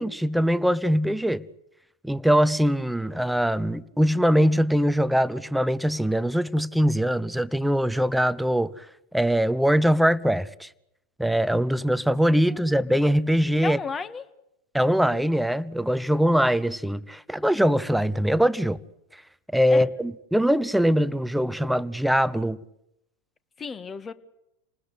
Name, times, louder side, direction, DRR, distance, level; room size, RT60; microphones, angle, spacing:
voice 1, 0.0-1.4 2.0-8.7 9.1-10.7 11.2-13.8 14.7-18.8 19.5-22.6, equal, ahead, 0.9 m, -22 dB
voice 2, 13.6-14.2 19.7-19.9 23.6-24.1, left 5 dB, 25° left, 1.7 m, -33 dB
28.5 x 20.0 x 8.2 m
hypercardioid pair, 90°, 0 cm